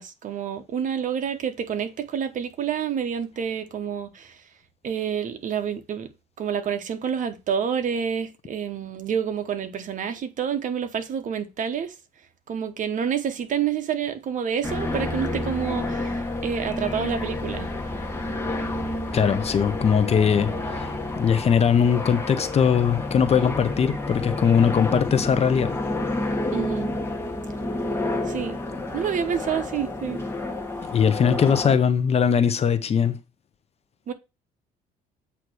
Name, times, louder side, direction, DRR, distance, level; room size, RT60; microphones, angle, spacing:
voice 1, 0.0-4.3 4.8-6.1 6.4-11.9 12.5-17.7 26.5-26.9 28.2-28.6 28.9-30.2 34.1-34.2, right 8 dB, 50° right, 1.1 m, -28 dB
sound 1, 14.6-31.8, left 2 dB, 15° left, 1.5 m, -29 dB
voice 2, 19.1-25.8 30.8-33.2, left 7 dB, 40° left, 0.8 m, -21 dB
8.2 x 3.0 x 6.2 m
cardioid pair, 110°, 17 cm